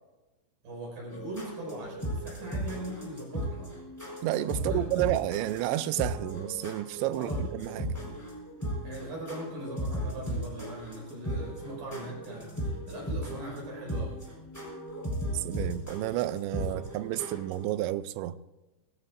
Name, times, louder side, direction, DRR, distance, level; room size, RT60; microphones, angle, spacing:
voice 1, 0.6-3.7 4.5-4.8 7.2-7.4 8.8-14.2 16.7-16.8, right 1 dB, 55° right, 7.5 m, -40 dB
sound 1, 1.1-17.7, equal, 5° left, 4.0 m, -36 dB
voice 2, 4.2-7.9 15.3-18.4, right 14 dB, 85° right, 2.9 m, -31 dB
19.0 x 17.0 x 2.6 m
omnidirectional pair, 5.2 m